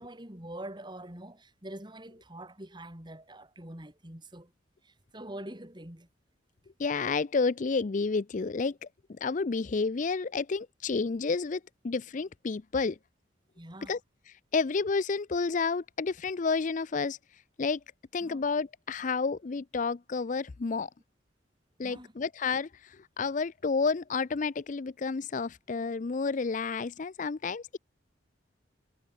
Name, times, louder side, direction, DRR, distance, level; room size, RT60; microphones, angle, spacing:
voice 1, 0.0-4.5 4.8-6.1 13.6-13.9 18.2-18.4 21.8-22.1, right 1 dB, 25° right, 3.2 m, -44 dB
voice 2, 6.8-13.0 13.9-14.0 14.5-17.2 17.6-17.8 18.1-20.9 21.8-27.8, left 4 dB, 40° left, 0.5 m, -30 dB
head